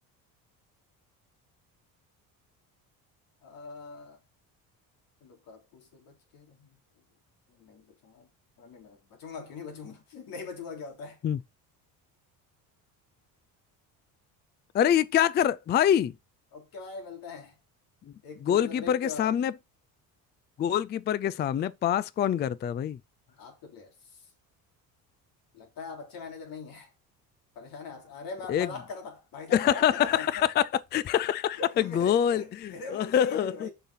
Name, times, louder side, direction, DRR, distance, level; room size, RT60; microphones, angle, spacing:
voice 1, 3.4-4.2 5.2-6.8 7.5-8.3 8.6-11.2 16.5-17.6 18.2-19.4 23.3-24.3 25.5-26.9 27.5-30.5 31.5-33.7, left 4 dB, 65° left, 3.4 m, -42 dB
voice 2, 14.7-16.1 18.4-19.5 20.6-23.0 28.5-28.7 29.5-30.6 30.9-33.7, left 10 dB, 30° left, 0.4 m, -25 dB
7.1 x 5.8 x 5.7 m
cardioid pair, 135°, 37 cm